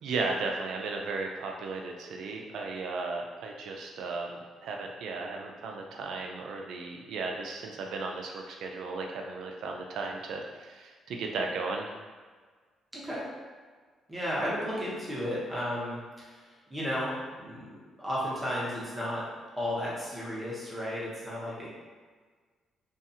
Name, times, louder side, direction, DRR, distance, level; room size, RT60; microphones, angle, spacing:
voice 1, 0.0-11.9, right 3 dB, 75° right, 1 dB, 0.4 m, -35 dB
voice 2, 12.9-13.2 14.1-19.2 19.6-21.7, equal, 15° right, -7 dB, 1.0 m, -34 dB
2.6 x 2.4 x 2.7 m, 1.5 s
cardioid pair, 90°, 0 cm